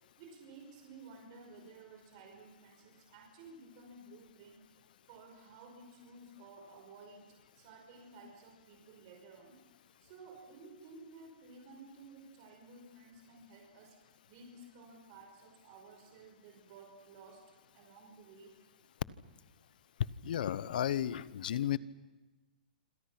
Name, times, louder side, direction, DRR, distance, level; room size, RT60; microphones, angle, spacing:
voice 1, 0.2-4.6 5.1-9.6 10.0-14.0 14.3-17.4 17.7-18.6, right 3 dB, 40° right, 2 dB, 5.6 m, -54 dB
voice 2, 20.2-21.8, left 11 dB, 60° left, 18 dB, 1.0 m, -33 dB
27.0 x 26.5 x 6.0 m, 1.1 s
hypercardioid pair, 160°, 5 cm